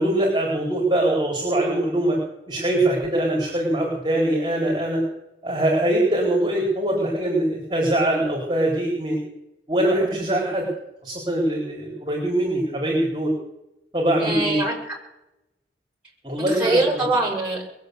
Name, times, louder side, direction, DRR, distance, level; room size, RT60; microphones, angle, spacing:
voice 1, 0.0-2.2 2.5-5.0 5.4-9.2 9.7-10.7 11.0-13.3 13.9-14.6 16.2-17.0, right 1 dB, 25° right, -3 dB, 4.0 m, -22 dB
voice 2, 14.2-14.9 16.6-17.7, right 2 dB, 5° right, -3 dB, 6.3 m, -23 dB
21.5 x 8.1 x 8.2 m, 0.89 s
head